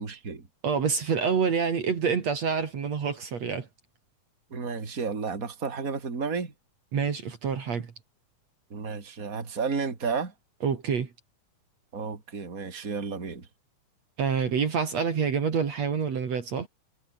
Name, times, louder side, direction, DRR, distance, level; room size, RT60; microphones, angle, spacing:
voice 1, 0.0-0.5 4.5-6.5 8.7-10.3 11.9-13.5, right 5 dB, 25° right, 3.6 m, -32 dB
voice 2, 0.6-3.7 6.9-7.9 10.6-11.1 14.2-16.7, right 6 dB, 55° right, 3.6 m, -27 dB
omnidirectional pair, 3.6 m